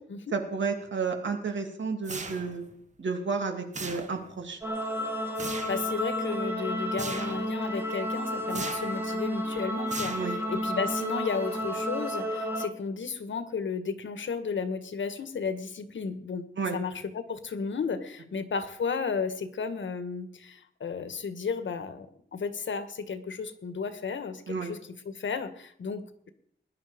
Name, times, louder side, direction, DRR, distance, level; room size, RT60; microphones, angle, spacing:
voice 1, 0.3-2.6 3.0-4.6 10.1-10.4 16.6-16.8 24.5-24.7, right 5 dB, 75° right, 5 dB, 2.6 m, -31 dB
sound 1, 2.0-2.7 3.7-4.4 5.4-5.9 7.0-7.5 8.5-9.0 9.9-10.6, right 3 dB, 40° right, 1.5 m, -38 dB
sound 2, 4.6-12.7, equal, 10° right, 1.7 m, -31 dB
voice 2, 5.4-16.5 16.7-24.8 25.0-26.3, left 5 dB, 80° left, 10 dB, 1.6 m, -33 dB
20.0 x 11.0 x 5.1 m, 0.69 s
wide cardioid pair, 175°, 19 cm